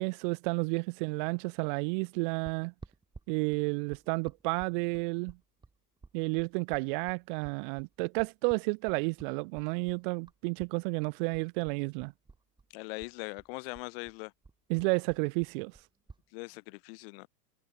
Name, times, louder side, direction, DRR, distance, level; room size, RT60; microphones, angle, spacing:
voice 1, 0.0-2.7 3.3-5.4 6.1-12.1 14.7-15.8, right 33 dB, 35° right, 0.6 m, -31 dB
sound 1, 2.8-10.7 11.0-12.7 13.0-16.2, right 4 dB, 10° right, 3.3 m, -54 dB
voice 2, 12.7-14.3 16.3-17.3, left 30 dB, 40° left, 0.7 m, -41 dB
hypercardioid pair, 115°, 47 cm